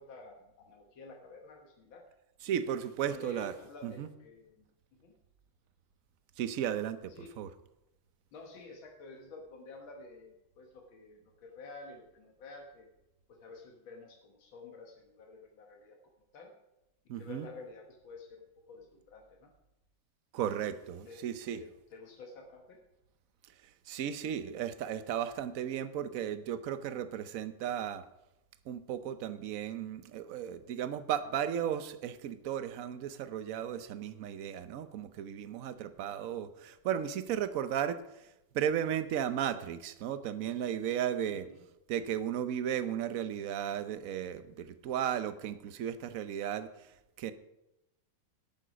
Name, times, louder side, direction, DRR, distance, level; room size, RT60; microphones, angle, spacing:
voice 1, 0.0-2.0 3.0-4.7 5.0-5.1 7.2-7.3 8.3-12.9 13.3-16.0 16.3-16.5 17.2-19.5 21.1-21.2 21.5-22.8 41.3-41.6, left 3 dB, 90° left, 1 dB, 2.2 m, -50 dB
voice 2, 2.4-3.6 3.8-4.1 6.4-7.5 17.1-17.5 20.3-21.6 23.9-28.0 28.7-38.3 38.5-41.5 41.9-46.9 47.2-47.3, right 9 dB, 60° right, 12 dB, 0.9 m, -35 dB
11.0 x 9.1 x 5.1 m, 0.91 s
omnidirectional pair, 2.1 m